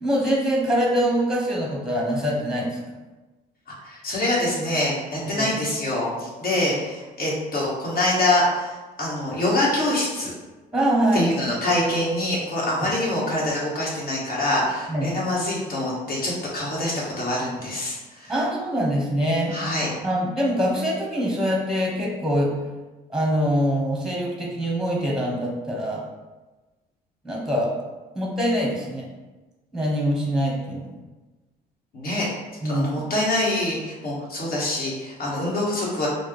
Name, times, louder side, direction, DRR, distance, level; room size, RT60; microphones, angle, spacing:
voice 1, 0.0-2.8 5.4-5.5 10.7-11.3 14.9-15.2 18.3-19.6 20.0-22.5 23.1-26.0 27.2-27.7 28.1-29.1 29.7-30.9 32.6-33.1, equal, 5° right, -2 dB, 0.8 m, -24 dB
voice 2, 3.8-8.7 9.0-10.3 11.1-18.3 19.5-19.9 31.9-32.3 32.7-36.1, left 1 dB, 60° left, -5 dB, 1.3 m, -25 dB
4.4 x 2.1 x 3.2 m, 1.2 s
cardioid pair, 110°, 17 cm